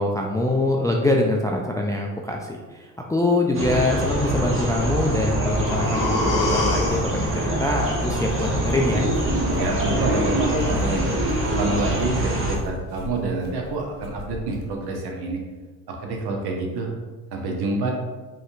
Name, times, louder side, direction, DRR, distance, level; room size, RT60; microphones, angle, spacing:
voice 1, 0.0-9.1, left 2 dB, 10° left, 0 dB, 0.4 m, -24 dB
sound 1, 3.5-12.6, right 1 dB, 25° right, 1.1 m, -24 dB
sound 2, 5.1-9.0 9.3-9.4, left 2 dB, 40° left, 1.0 m, -29 dB
sound 3, 7.8-14.8, left 3 dB, 70° left, 0.9 m, -37 dB
voice 2, 9.4-11.1 11.5-15.4 15.9-16.9 17.3-17.9, right 3 dB, 55° right, 1 dB, 1.0 m, -27 dB
5.0 x 3.2 x 2.5 m, 1.3 s
hypercardioid pair, 50°, 46 cm